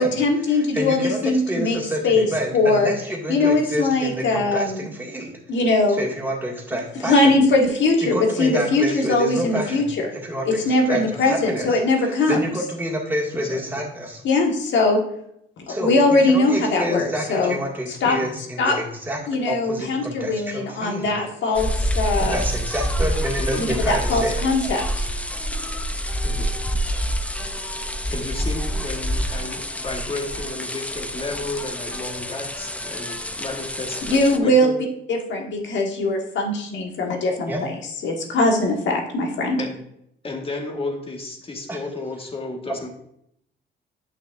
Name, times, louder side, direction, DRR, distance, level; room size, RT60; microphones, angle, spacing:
voice 1, 0.0-1.8 2.0-2.3 2.5-2.9 3.3-4.9 5.5-6.0 7.0-10.1 10.4-12.4 14.2-15.0 15.6-17.5 18.0-18.2 18.6-18.7 19.3-22.4 23.6-25.1 34.1-34.7 35.1-37.7 38.0-39.6, left 2 dB, 70° left, 1 dB, 1.5 m, -21 dB
voice 2, 0.5-5.3 5.9-7.4 8.0-14.2 15.7-19.2 19.5-21.1 22.2-24.4 37.5-37.6 41.7-41.8, equal, 10° right, -2 dB, 2.0 m, -28 dB
voice 3, 10.9-11.2 13.3-13.6 18.0-18.3 23.4-23.7 26.2-26.6 28.1-34.8 39.6-39.8 40.2-42.9, left 2 dB, 30° left, 1 dB, 1.6 m, -33 dB
sound 1, 21.5-34.4, equal, 5° left, 0.5 m, -27 dB
8.8 x 6.0 x 2.6 m, 0.74 s
cardioid pair, 90°, 20 cm